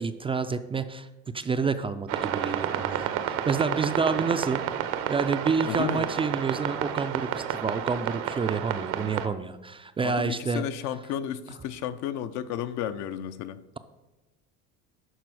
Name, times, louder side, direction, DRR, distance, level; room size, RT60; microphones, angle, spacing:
voice 1, 0.0-4.6 5.1-10.6, right 5 dB, 20° right, 0.3 m, -29 dB
sound 1, 2.1-9.3, right 10 dB, 75° right, 0.8 m, -30 dB
voice 2, 5.6-6.1 10.0-13.6, left 10 dB, 65° left, 0.6 m, -33 dB
11.0 x 4.2 x 4.7 m
supercardioid pair, 100°, 32 cm